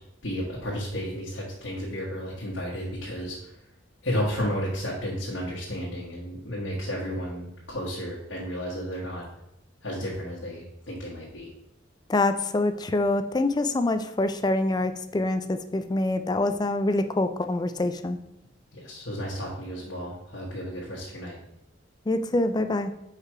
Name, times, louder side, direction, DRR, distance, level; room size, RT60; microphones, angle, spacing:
voice 1, 0.2-3.5 4.0-9.2 9.8-11.5 18.7-21.4, equal, 75° left, -6 dB, 1.4 m, -32 dB
voice 2, 12.1-18.2 22.1-22.9, left 2 dB, 20° left, 9 dB, 0.4 m, -25 dB
4.9 x 4.6 x 4.7 m, 0.85 s
head